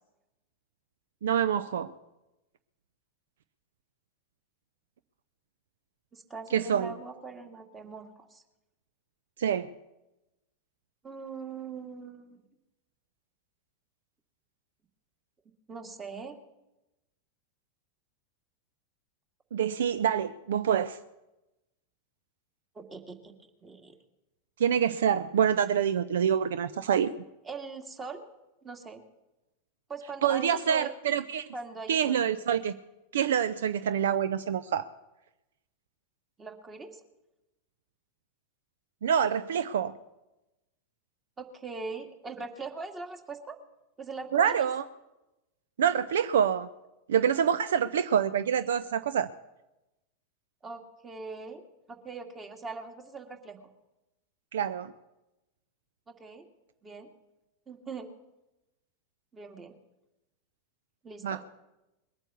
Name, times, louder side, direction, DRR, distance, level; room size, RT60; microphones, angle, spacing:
voice 1, 1.2-1.9 6.5-6.9 9.4-9.7 19.5-21.0 24.6-27.1 30.2-31.4 31.9-32.7 33.1-34.8 39.0-39.9 44.3-44.8 45.8-46.7 47.1-49.3 54.5-54.9 61.2-61.4, right 8 dB, 60° right, 13 dB, 0.5 m, -26 dB
voice 2, 6.1-8.4 11.0-12.4 15.7-16.4 22.7-23.3 23.6-24.0 27.4-28.3 28.6-29.0 29.9-30.9 31.5-32.2 36.4-37.0 41.4-43.6 44.0-44.7 50.6-51.6 51.9-53.6 56.1-56.5 56.8-57.1 57.7-58.1 59.3-59.7 61.0-61.4, right 4 dB, 20° right, 5 dB, 2.2 m, -41 dB
21.5 x 9.0 x 7.1 m, 0.98 s
figure-of-eight pair, 90°, 0 cm